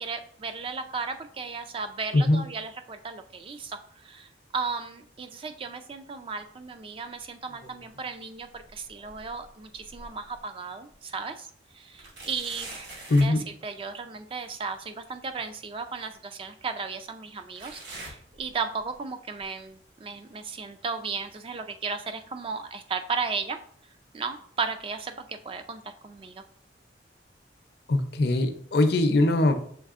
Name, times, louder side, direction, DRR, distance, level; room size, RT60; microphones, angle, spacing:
voice 1, 0.0-11.5 11.7-12.9 13.2-23.6 24.1-26.4, right 4 dB, 30° right, 8 dB, 0.3 m, -35 dB
sound 1, 7.4-8.1 8.5-10.4 10.9-11.0 12.0-13.4 15.1-15.2 16.1-16.2 17.6-18.9 19.3-19.7 20.3-20.4 21.3-21.4, right 2 dB, 70° right, 1.7 m, -45 dB
voice 2, 13.1-13.4 27.9-29.6, left 2 dB, 60° left, 7 dB, 0.5 m, -21 dB
6.4 x 3.3 x 2.4 m, 0.62 s
head